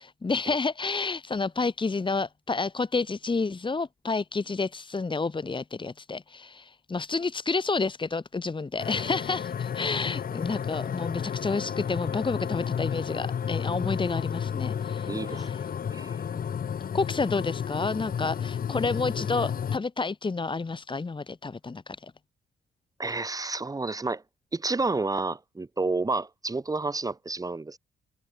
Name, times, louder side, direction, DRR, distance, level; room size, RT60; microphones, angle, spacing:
voice 1, 0.0-15.6 16.3-16.5 16.9-22.1, left 4 dB, 25° left, 1.9 m, -30 dB
sound 1, 8.8-19.8, left 8 dB, 45° left, 1.3 m, -32 dB
voice 2, 15.1-15.5 15.9-16.2 23.0-24.2 24.5-27.8, right 3 dB, 20° right, 0.9 m, -30 dB
cardioid pair, 90°, 20 cm